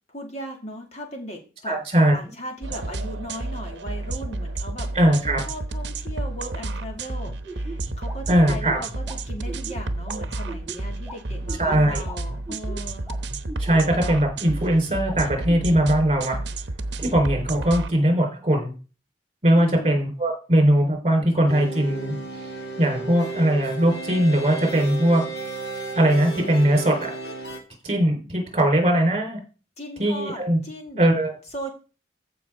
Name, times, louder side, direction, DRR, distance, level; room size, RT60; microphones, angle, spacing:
voice 1, 0.1-1.8 2.1-13.1 19.6-20.0 29.8-31.0 31.5-31.7, equal, 35° left, 2 dB, 2.4 m, -37 dB
voice 2, 1.7-2.1 4.9-5.4 8.3-8.8 11.6-12.0 13.6-16.4 17.0-18.7 19.4-22.1 22.8-25.2 26.0-27.1 27.8-29.4 30.0-30.6 31.0-31.3, right 1 dB, 35° right, 2 dB, 4.2 m, -20 dB
sound 1, 2.6-17.9, right 2 dB, 70° right, 0.9 m, -31 dB
sound 2, 7.2-15.7, right 2 dB, 5° right, 1.8 m, -39 dB
sound 3, 21.5-27.6, right 3 dB, 70° left, 2.1 m, -33 dB
15.0 x 5.5 x 3.7 m, 0.35 s
head